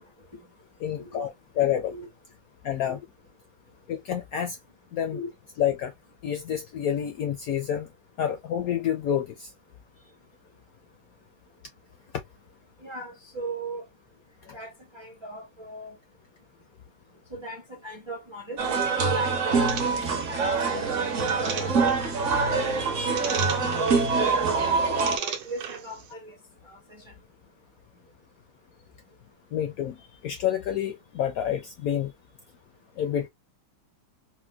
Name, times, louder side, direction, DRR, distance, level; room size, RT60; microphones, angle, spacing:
voice 1, 0.8-1.9 2.6-3.0 3.9-4.6 4.9-5.2 5.6-5.9 6.2-7.9 8.2-9.5 29.5-32.1 33.0-33.3, left 10 dB, 75° left, 0.8 m, -28 dB
voice 2, 12.8-13.8 14.5-15.9 17.3-21.1 21.4-22.0 22.4-22.7 23.1-23.9 24.2-26.3 26.6-26.8, right 1 dB, 30° right, 0.5 m, -38 dB
sound 1, 18.6-25.2, right 4 dB, 55° right, 0.9 m, -25 dB
sound 2, 19.7-26.1, right 8 dB, 80° right, 1.4 m, -38 dB
4.3 x 2.2 x 2.2 m
omnidirectional pair, 2.0 m